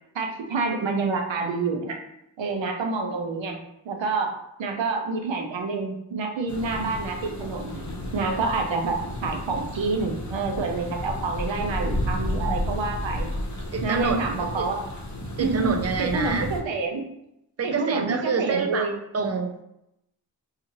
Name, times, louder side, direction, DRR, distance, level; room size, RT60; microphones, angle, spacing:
voice 1, 0.1-2.0 2.4-3.6 3.8-4.3 4.6-7.8 8.1-9.0 9.2-13.3 13.8-14.8 15.4-17.0 17.6-19.0, right 4 dB, 85° right, 3 dB, 0.6 m, -28 dB
sound 1, 6.5-16.6, left 1 dB, 40° left, 0.8 m, -32 dB
voice 2, 13.7-14.2 14.6-14.7 15.4-16.5 17.6-18.9 19.1-19.6, right 5 dB, 35° right, 5 dB, 0.5 m, -26 dB
2.5 x 2.4 x 2.9 m, 0.83 s
cardioid pair, 40°, 44 cm